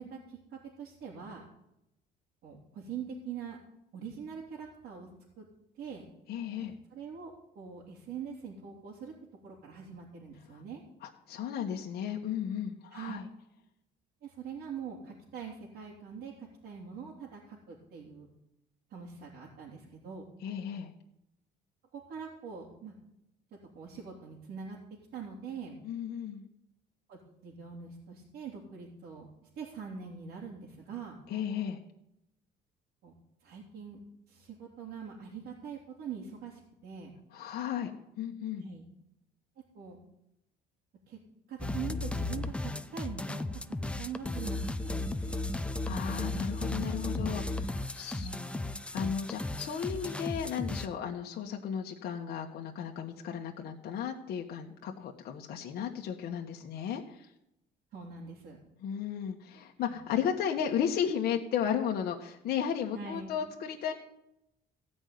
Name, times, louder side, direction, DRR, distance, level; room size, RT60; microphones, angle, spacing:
voice 1, 0.0-1.4 2.4-3.6 3.9-5.1 5.4-5.5 5.7-6.0 6.6-9.1 9.4-10.8 12.9-13.2 14.2-18.3 18.9-20.2 21.9-22.9 23.7-24.8 25.1-25.8 27.1-29.3 29.5-31.2 33.0-33.1 33.4-34.0 34.3-37.1 38.6-38.8 39.6-40.0 41.1-41.2 41.5-45.4 48.0-48.4 57.9-58.6 59.9-60.0 62.9-63.4, right 6 dB, 70° right, -4 dB, 3.1 m, -43 dB
voice 2, 6.3-6.7 11.0-13.3 20.4-20.9 25.8-26.5 31.3-31.8 37.3-37.9 38.2-38.7 45.2-45.4 45.8-48.3 48.9-57.3 58.8-63.9, left 8 dB, 70° left, 1 dB, 1.4 m, -34 dB
sound 1, 41.6-50.9, left 2 dB, 5° left, 0.6 m, -35 dB
15.5 x 5.5 x 9.4 m, 0.84 s
cardioid pair, 110°, 17 cm